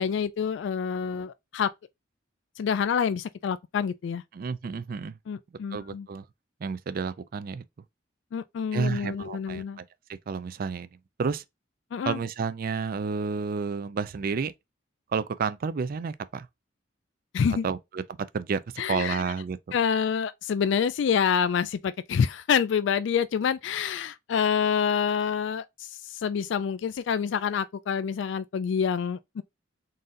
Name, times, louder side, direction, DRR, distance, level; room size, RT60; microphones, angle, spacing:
voice 1, 0.0-1.7 2.6-4.2 5.3-6.1 8.3-9.8 11.9-12.2 17.3-17.7 18.8-19.3 19.7-29.4, left 7 dB, 70° left, 0.3 m, -27 dB
voice 2, 4.3-5.2 5.7-6.2 6.6-7.6 8.7-9.8 10.1-10.9 11.2-11.4 12.1-14.5 15.1-16.5 17.6-18.0 18.3-18.6 18.9-19.6, right 5 dB, 50° right, 0.4 m, -30 dB
3.9 x 2.6 x 3.8 m
head